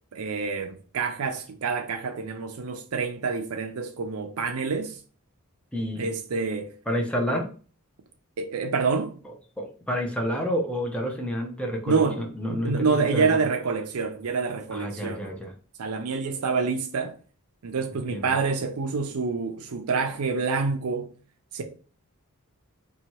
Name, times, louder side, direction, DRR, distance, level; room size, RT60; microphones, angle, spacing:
voice 1, 0.1-5.0 6.0-6.7 8.4-9.1 11.9-12.2 12.5-15.3 15.8-17.1 17.6-21.1 21.5-21.6, right 4 dB, 85° right, 0.5 m, -27 dB
voice 2, 5.7-6.1 6.9-7.5 9.6-13.3 14.7-15.5 18.1-18.3, equal, 5° left, 0.5 m, -29 dB
2.8 x 2.3 x 2.9 m
head